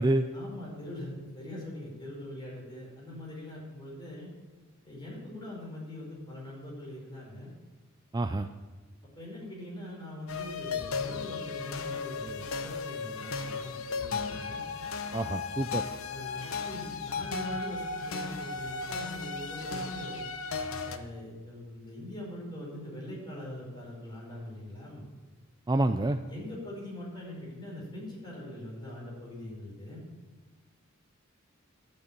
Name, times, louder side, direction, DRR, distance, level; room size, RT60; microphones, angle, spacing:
voice 1, 0.3-4.3 4.8-7.5 9.2-14.6 16.1-20.2 20.8-25.1 26.3-30.0, left 1 dB, 20° left, -4 dB, 5.3 m, -42 dB
voice 2, 8.1-8.5 15.1-15.8 25.7-26.2, right 2 dB, 20° right, 8 dB, 0.4 m, -27 dB
sound 1, 10.3-21.0, left 4 dB, 80° left, 0.9 m, -35 dB
12.5 x 6.8 x 8.9 m, 1.3 s
head